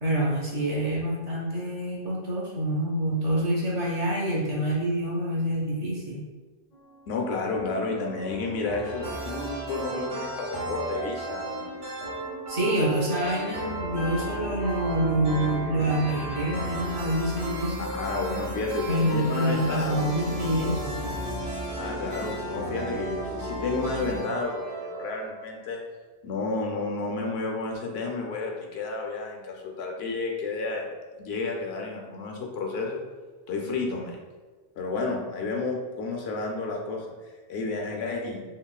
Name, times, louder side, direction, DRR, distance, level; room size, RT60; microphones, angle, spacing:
voice 1, 0.0-6.2 12.5-17.9 18.9-21.0, right 1 dB, 45° right, -4 dB, 0.6 m, -27 dB
sound 1, 6.7-7.2 7.5-24.2, left 1 dB, 50° left, 0.5 m, -38 dB
voice 2, 7.1-11.7 17.8-20.2 21.7-25.8 26.2-30.9 31.2-33.0 33.5-34.2 34.8-38.4, left 3 dB, 85° left, 0 dB, 0.8 m, -31 dB
sound 2, 8.8-25.4, right 3 dB, 60° right, 1.2 m, -36 dB
3.0 x 2.7 x 2.3 m, 1.3 s
omnidirectional pair, 1.0 m